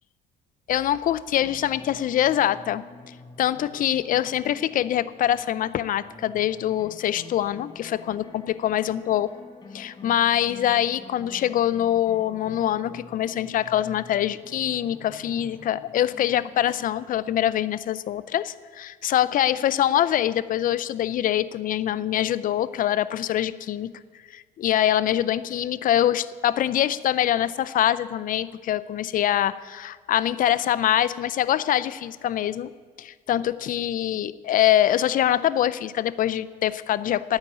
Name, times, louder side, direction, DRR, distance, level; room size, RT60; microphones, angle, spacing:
voice 1, 0.7-2.8 3.4-9.3 9.7-23.9 24.3-32.7 33.0-37.4, left 11 dB, 55° left, 17 dB, 0.6 m, -24 dB
sound 1, 1.4-17.6, left 3 dB, 25° left, 1.9 m, -47 dB
10.5 x 8.9 x 9.5 m, 1.5 s
cardioid pair, 110°, 17 cm